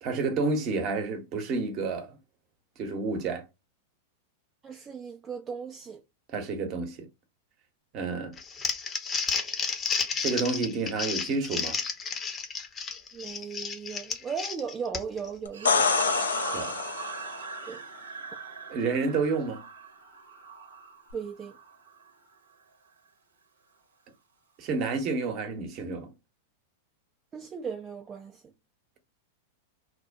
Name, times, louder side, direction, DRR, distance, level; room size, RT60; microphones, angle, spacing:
voice 1, 0.0-2.2 2.8-3.5 6.3-7.1 7.9-8.4 10.2-11.8 16.5-16.8 18.7-19.6 24.6-26.1, right 4 dB, 45° right, 0.9 m, -30 dB
voice 2, 4.6-6.0 13.1-15.9 17.7-17.8 21.1-21.6 27.3-28.4, right 6 dB, 25° right, 0.4 m, -37 dB
Crumpling crinkling, 8.4-15.3, left 5 dB, 25° left, 0.7 m, -32 dB
sound 1, 15.5-17.4 21.1-21.2, left 5 dB, 80° left, 0.4 m, -26 dB
sound 2, 15.5-22.1, right 5 dB, 75° right, 0.8 m, -40 dB
2.9 x 2.1 x 2.6 m
hypercardioid pair, 95°, 0 cm